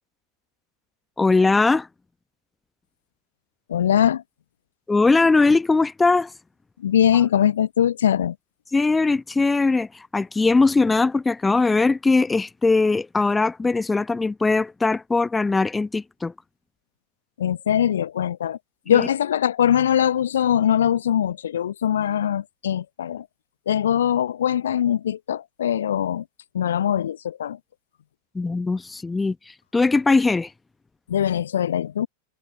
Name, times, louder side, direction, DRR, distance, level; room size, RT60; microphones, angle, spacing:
voice 1, 1.2-1.9 4.9-6.3 8.7-16.3 18.9-19.1 28.3-30.5, left 3 dB, 10° left, 1.1 m, -20 dB
voice 2, 3.7-4.2 6.8-8.3 17.4-18.6 18.9-23.3 23.7-26.2 26.5-27.6 31.1-32.1, left 10 dB, 65° left, 0.9 m, -22 dB
figure-of-eight pair, 90°, 0 cm